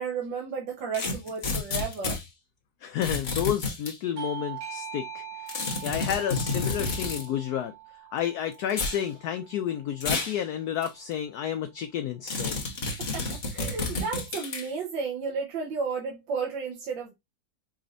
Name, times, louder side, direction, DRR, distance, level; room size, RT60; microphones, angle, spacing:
voice 1, 0.0-2.2 13.1-17.1, right 5 dB, 75° right, 1.7 m, -33 dB
sound 1, 0.9-2.2 3.0-3.9 5.5-7.3 8.7-9.0 10.0-10.4 10.8-10.9 12.3-14.7, left 3 dB, 35° left, 0.9 m, -30 dB
voice 2, 2.8-5.6 5.8-7.7 8.1-12.6, left 10 dB, 75° left, 0.9 m, -31 dB
Bell / Doorbell, 4.2-9.4, right 8 dB, 45° right, 1.4 m, -42 dB
5.0 x 3.2 x 2.5 m
omnidirectional pair, 2.0 m